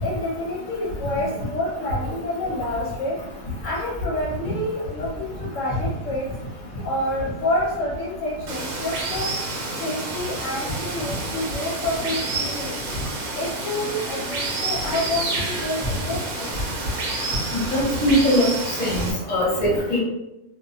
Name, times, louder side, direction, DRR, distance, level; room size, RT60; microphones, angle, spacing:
voice 1, 0.0-3.2 3.6-6.3 6.8-9.3 9.8-12.8 13.3-16.5, left 1 dB, 70° left, -4 dB, 0.8 m, -28 dB
Water, 8.5-19.1, right 2 dB, 80° right, 1.1 m, -29 dB
voice 2, 17.7-18.4 18.8-19.0 19.3-20.0, equal, 35° left, -4 dB, 0.7 m, -20 dB
2.3 x 2.1 x 2.6 m, 0.90 s
omnidirectional pair, 1.5 m